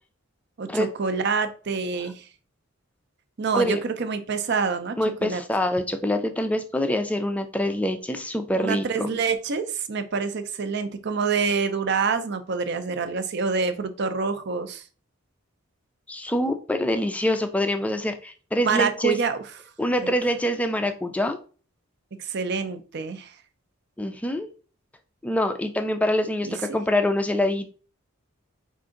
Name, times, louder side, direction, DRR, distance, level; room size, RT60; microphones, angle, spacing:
voice 1, 0.6-2.3 3.4-5.4 8.6-14.8 18.6-19.4 20.0-20.1 22.2-23.3 26.4-26.8, right 5 dB, 50° right, 9 dB, 0.5 m, -27 dB
voice 2, 5.0-9.2 16.1-19.2 19.8-21.4 24.0-24.5 25.2-27.7, left 1 dB, 5° left, 7 dB, 0.3 m, -25 dB
4.7 x 2.5 x 3.7 m, 0.38 s
head